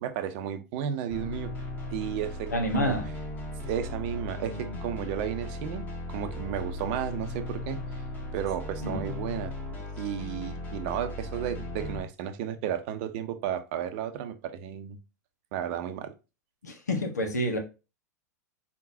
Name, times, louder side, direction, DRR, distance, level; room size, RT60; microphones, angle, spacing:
voice 1, 0.0-1.5 1.9-2.5 2.8-2.9 3.7-7.8 8.3-9.5 10.0-15.0 15.5-16.1, right 9 dB, 45° right, 0.7 m, -33 dB
sound 1, 1.1-12.0, left 1 dB, 15° left, 1.6 m, -37 dB
voice 2, 2.5-3.1 8.8-9.0 16.6-17.6, equal, 75° left, 1.3 m, -28 dB
4.5 x 3.8 x 2.7 m
figure-of-eight pair, 95°, 9 cm